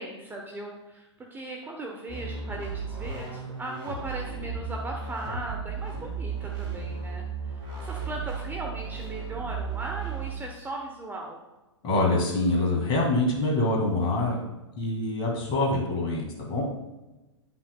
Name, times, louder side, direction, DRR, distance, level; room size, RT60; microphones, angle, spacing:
voice 1, 0.0-7.2 7.5-11.4, right 2 dB, 10° right, 0 dB, 0.7 m, -38 dB
sound 1, 2.1-10.3, right 5 dB, 30° right, 2.4 m, -35 dB
voice 2, 11.8-14.4 14.8-16.6, left 2 dB, 30° left, 0 dB, 2.0 m, -25 dB
9.7 x 5.9 x 2.2 m, 1.0 s
hypercardioid pair, 110°, 15 cm